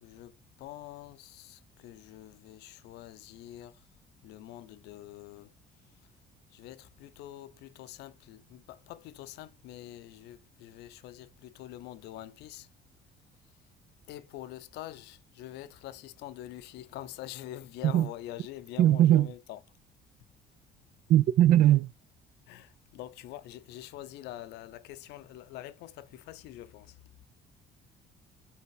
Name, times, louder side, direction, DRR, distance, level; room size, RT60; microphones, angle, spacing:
voice 1, 0.0-3.8 4.2-5.5 6.5-12.7 14.1-19.6 22.5-27.0, left 14 dB, 85° left, 0.6 m, -45 dB
voice 2, 18.8-19.3 21.1-21.9, right 12 dB, 55° right, 0.4 m, -20 dB
5.6 x 4.3 x 4.7 m
cardioid pair, 110°, 17 cm